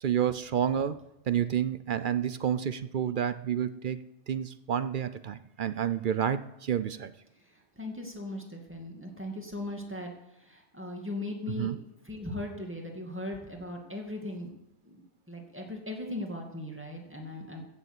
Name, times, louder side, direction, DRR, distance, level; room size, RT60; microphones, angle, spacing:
voice 1, 0.0-1.0 1.3-4.0 4.3-7.1 11.6-11.8, right 9 dB, 55° right, 14 dB, 0.6 m, -29 dB
voice 2, 7.5-11.7 12.0-14.5 14.8-17.6, left 1 dB, 10° right, 1 dB, 2.2 m, -39 dB
14.5 x 6.8 x 8.0 m, 0.84 s
omnidirectional pair, 1.2 m